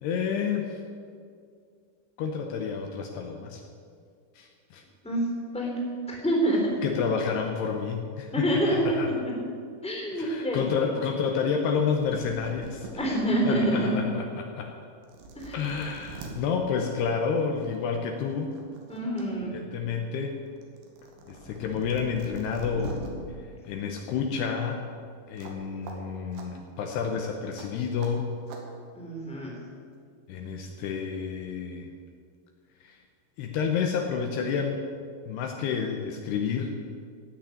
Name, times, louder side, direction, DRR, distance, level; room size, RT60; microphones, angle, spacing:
voice 1, 0.0-0.8 2.2-3.6 4.4-4.8 6.8-9.1 10.1-12.9 13.5-14.7 15.5-18.6 19.5-20.4 21.3-23.0 23.4-24.9 25.3-28.4 30.3-31.9 32.8-33.0 33.4-34.8 35.2-36.8, left 6 dB, 75° left, 3 dB, 2.8 m, -30 dB
voice 2, 6.1-6.7 8.3-9.3 9.8-10.9 12.9-13.9 15.3-15.6 18.9-19.6 22.7-22.8 28.9-29.6, right 1 dB, ahead, -2 dB, 2.6 m, -27 dB
sound 1, 11.7-11.8 12.0-13.1 13.7-13.8 14.6-14.7 15.0-16.3 17.6-17.8 18.2-19.3 19.6-23.1 25.4-25.6 25.9-26.0 26.3-26.5 27.5-27.7 28.0-28.1 28.5-28.6, right 4 dB, 75° right, 3.9 m, -43 dB
16.5 x 6.6 x 9.8 m, 2.2 s
omnidirectional pair, 5.2 m